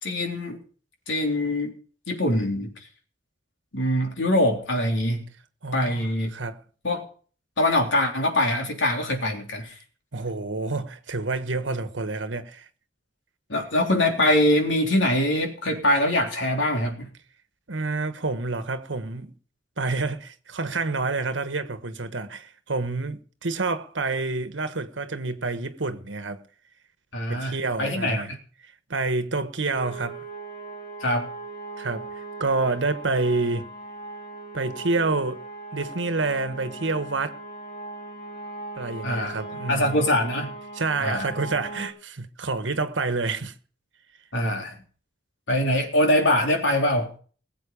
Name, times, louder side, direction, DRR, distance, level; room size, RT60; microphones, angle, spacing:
voice 1, 0.0-0.6 1.1-1.7 2.1-2.7 3.7-5.2 5.7-6.3 6.8-7.0 7.6-9.7 13.5-17.1 27.1-28.2 31.0-31.3 39.0-39.4 39.7-40.5 41.0-41.3 44.3-44.8 45.5-47.1, left 1 dB, 85° left, 3.5 m, -23 dB
voice 2, 5.6-6.6 10.1-12.7 17.7-19.3 19.8-26.4 27.3-28.3 28.9-30.2 31.8-33.7 34.5-35.4 35.7-37.4 38.8-39.9 40.7-43.5, right 3 dB, 85° right, 1.3 m, -28 dB
sound 1, 29.7-41.9, right 2 dB, 30° left, 3.2 m, -39 dB
20.5 x 7.8 x 5.1 m
head